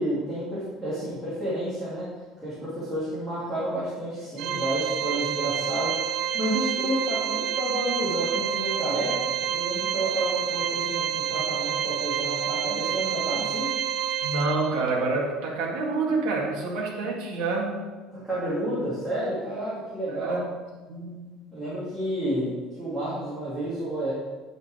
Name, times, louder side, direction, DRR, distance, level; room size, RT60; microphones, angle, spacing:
voice 1, 0.0-2.1 2.4-13.7 18.1-20.4 21.5-24.1, right 1 dB, 10° right, -12 dB, 2.7 m, -30 dB
Organ, 4.4-15.0, right 9 dB, 45° right, 0.4 m, -28 dB
voice 2, 14.2-17.8 20.1-20.5 20.9-21.3, right 3 dB, 70° right, -2 dB, 2.1 m, -28 dB
10.0 x 5.4 x 5.0 m, 1.3 s
cardioid pair, 180°, 0 cm